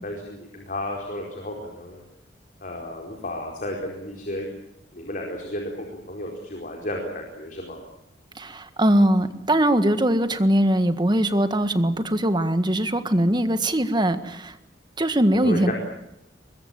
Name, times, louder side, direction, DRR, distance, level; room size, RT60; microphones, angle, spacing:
voice 1, 0.0-2.0 2.6-4.5 4.9-7.8 15.3-15.7, left 1 dB, 50° left, 1 dB, 4.6 m, -33 dB
voice 2, 8.3-14.5 15.0-15.7, right 1 dB, 25° right, 10 dB, 1.7 m, -21 dB
23.5 x 22.0 x 8.9 m, 0.81 s
head